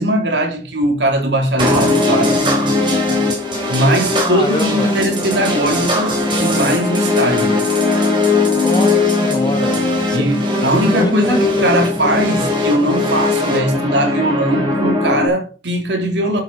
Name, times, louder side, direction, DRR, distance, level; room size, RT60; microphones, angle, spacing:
voice 1, 0.0-2.5 3.7-7.6 10.1-10.3 10.6-16.4, right 1 dB, 80° right, 3.3 m, -19 dB
sound 1, 1.6-15.3, left 2 dB, 25° right, 3.8 m, -18 dB
voice 2, 4.2-4.9 8.6-10.3 10.8-11.8, left 1 dB, 25° left, 1.4 m, -24 dB
12.0 x 7.9 x 4.1 m
head